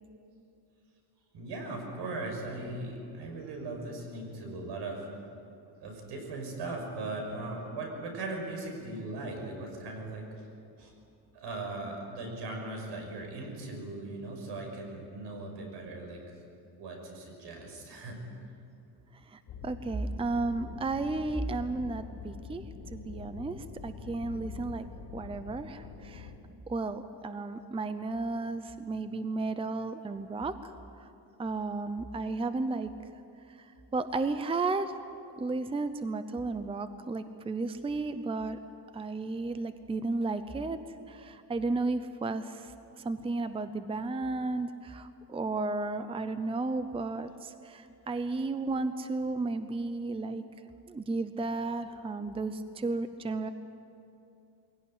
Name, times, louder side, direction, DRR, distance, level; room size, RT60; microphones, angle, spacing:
voice 1, 1.3-5.1 5.8-10.3 10.8-10.9 11.3-16.2 16.8-18.2, right 2 dB, 75° right, 2 dB, 6.0 m, -39 dB
voice 2, 19.3-22.6 22.9-24.9 25.1-26.3 26.7-30.7 31.4-32.9 33.6-33.7 33.9-34.9 35.4-38.6 38.9-40.8 41.1-42.7 43.0-50.4 50.9-53.5, right 3 dB, 15° right, 11 dB, 0.7 m, -33 dB
sound 1, 19.5-26.4, left 5 dB, 65° left, 5.4 m, -45 dB
23.5 x 17.0 x 9.5 m, 2.7 s
cardioid pair, 140°, 42 cm